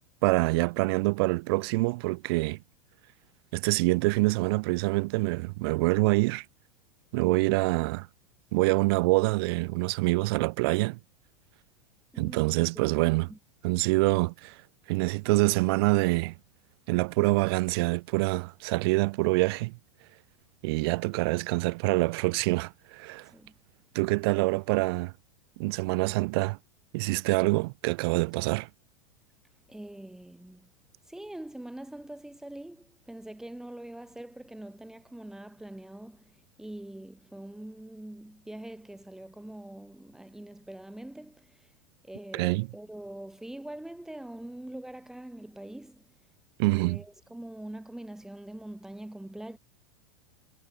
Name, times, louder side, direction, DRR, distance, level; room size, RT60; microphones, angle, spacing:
voice 1, 0.2-2.6 3.5-6.5 7.1-8.1 8.5-11.0 12.2-13.3 13.6-14.6 14.9-16.3 16.9-19.7 20.6-23.3 23.9-25.1 25.6-26.6 26.9-28.7 42.3-42.7 46.6-47.0, right 25 dB, 45° right, 0.4 m, -26 dB
voice 2, 12.1-12.9 13.3-13.4 23.3-23.5 29.7-30.7 31.1-41.7 42.0-46.0 46.7-49.6, right 1 dB, 5° right, 0.6 m, -43 dB
figure-of-eight pair, 90°, 19 cm